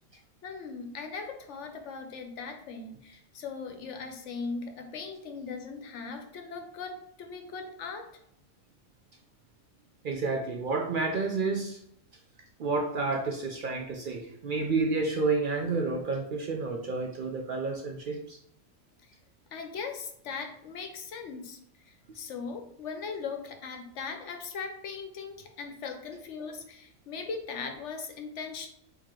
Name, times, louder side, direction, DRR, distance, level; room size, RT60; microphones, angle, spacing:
voice 1, 0.4-8.1 19.5-21.6 21.9-28.7, left 5 dB, 65° left, 5 dB, 0.9 m, -39 dB
voice 2, 10.0-11.8 12.6-18.4, right 3 dB, 70° right, 1 dB, 0.5 m, -30 dB
4.7 x 2.8 x 3.6 m, 0.71 s
omnidirectional pair, 1.4 m